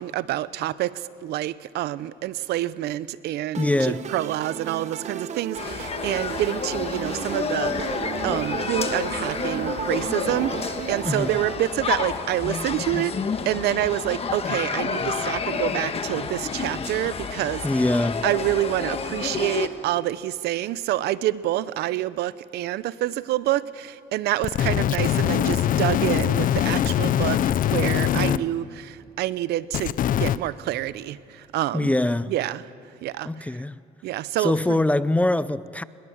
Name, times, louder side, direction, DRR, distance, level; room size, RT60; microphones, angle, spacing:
voice 1, 0.0-7.9 8.2-13.2 13.5-17.6 18.2-31.9 32.3-32.6 33.0-33.5 34.0-34.8, right 14 dB, 75° right, 0.7 m, -27 dB
sound 1, 3.5-11.5, right 7 dB, 45° right, 1.1 m, -34 dB
voice 2, 3.6-4.1 11.0-11.4 17.6-18.3 28.1-28.6 31.7-32.3 33.3-33.8 34.4-35.8, left 1 dB, 10° left, 0.5 m, -23 dB
sound 2, 5.6-19.7, left 5 dB, 35° left, 1.4 m, -30 dB
sound 3, 24.4-28.4 29.7-30.4, left 11 dB, 55° left, 0.6 m, -22 dB
23.5 x 21.0 x 7.2 m
cardioid pair, 110°, 17 cm